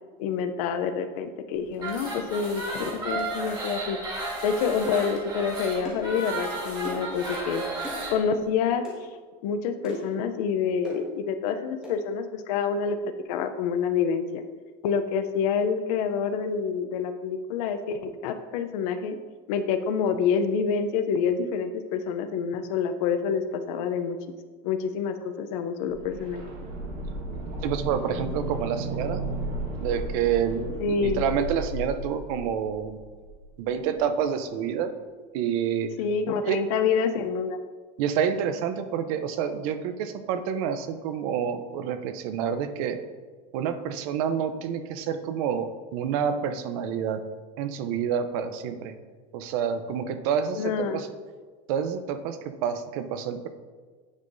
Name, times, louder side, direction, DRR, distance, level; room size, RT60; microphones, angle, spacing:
voice 1, 0.2-4.0 4.4-7.6 8.1-8.8 9.4-14.4 14.8-19.2 19.5-24.2 24.6-26.4 30.8-31.2 36.0-37.6 50.5-51.0, left 6 dB, 70° left, 8 dB, 0.6 m, -27 dB
sound 1, 1.7-8.1, right 2 dB, 20° right, 1.4 m, -33 dB
sound 2, 4.8-5.0 5.8-6.1 6.8-7.1 7.8-8.0 8.8-9.0 9.8-10.2 10.8-11.0 11.8-12.0, equal, 5° right, 1.5 m, -38 dB
sound 3, 25.8-33.7 33.9-34.0, right 1 dB, 45° right, 1.5 m, -34 dB
voice 2, 27.6-29.2 29.8-33.0 33.6-34.9 35.3-35.9 36.4-36.6 38.0-43.0 43.5-47.2 47.6-48.9 49.3-51.1 51.7-53.5, right 8 dB, 60° right, 10 dB, 0.6 m, -28 dB
9.6 x 5.5 x 2.6 m, 1.5 s
cardioid pair, 170°, 20 cm